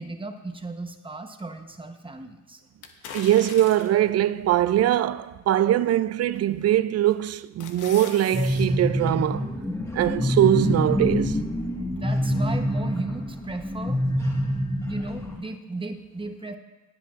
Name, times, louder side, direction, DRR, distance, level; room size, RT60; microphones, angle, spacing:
voice 1, 0.0-2.6 11.9-14.0 14.9-16.6, right 2 dB, 15° right, 1.0 m, -35 dB
sound 1, 2.8-4.1 4.7-4.8 6.3-6.7 7.1-8.7 9.0-9.1, left 6 dB, 80° left, 1.1 m, -41 dB
voice 2, 3.1-9.5 9.9-11.4, right 12 dB, 55° right, 0.4 m, -22 dB
sound 2, 8.3-15.4, equal, 10° left, 1.6 m, -26 dB
20.0 x 8.2 x 2.5 m
cardioid pair, 90°, 30 cm